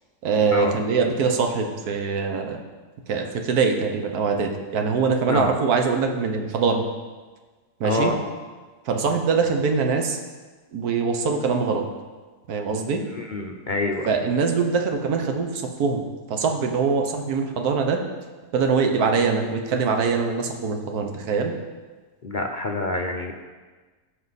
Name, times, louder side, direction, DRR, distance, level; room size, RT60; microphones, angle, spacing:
voice 1, 0.2-2.6 3.1-6.8 7.8-8.1 8.8-10.2 10.7-11.8 12.5-13.0 14.1-16.0 16.3-18.0 18.5-21.5, right 5 dB, 75° right, 4 dB, 1.5 m, -23 dB
voice 2, 7.8-8.2 13.1-14.1 22.2-23.3, left 2 dB, 50° left, 2 dB, 0.6 m, -26 dB
15.5 x 6.0 x 4.1 m, 1.3 s
omnidirectional pair, 1.7 m